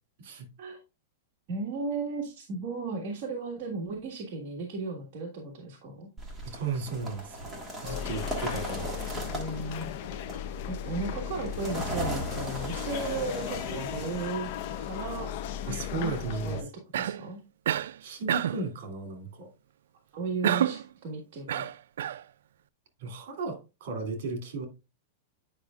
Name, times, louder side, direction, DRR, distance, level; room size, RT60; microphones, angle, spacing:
voice 1, 1.5-6.1 9.1-9.9 10.7-14.5 14.8-15.3 15.9-16.7 16.9-17.4 20.1-21.7, right 3 dB, 40° right, 1.5 m, -35 dB
sound 1, 6.2-15.1, right 1 dB, 5° right, 1.5 m, -38 dB
voice 2, 6.4-8.9 15.6-16.6 18.0-19.5 23.0-24.7, right 4 dB, 55° right, 2.7 m, -35 dB
sound 2, 7.8-16.6, left 9 dB, 50° left, 0.5 m, -36 dB
Cough, 16.9-17.3 17.7-18.0 18.3-18.7 20.4-20.9 21.5-22.2, right 10 dB, 80° right, 0.3 m, -28 dB
9.5 x 5.4 x 2.4 m
supercardioid pair, 165°, 0 cm